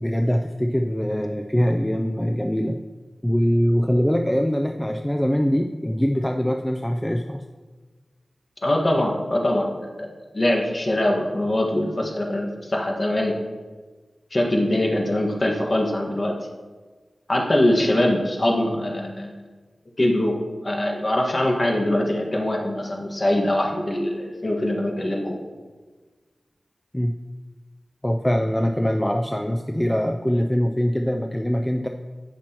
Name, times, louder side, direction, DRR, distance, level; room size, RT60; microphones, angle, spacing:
voice 1, 0.0-2.8 3.2-7.4 26.9-27.1 28.0-31.9, equal, 10° left, 4 dB, 0.4 m, -23 dB
voice 2, 8.6-10.1 10.3-13.3 14.3-16.3 17.3-19.3 20.0-20.4 20.6-25.4, left 1 dB, 35° left, 0 dB, 1.6 m, -22 dB
17.0 x 6.0 x 3.0 m, 1.3 s
wide cardioid pair, 95°, 0 cm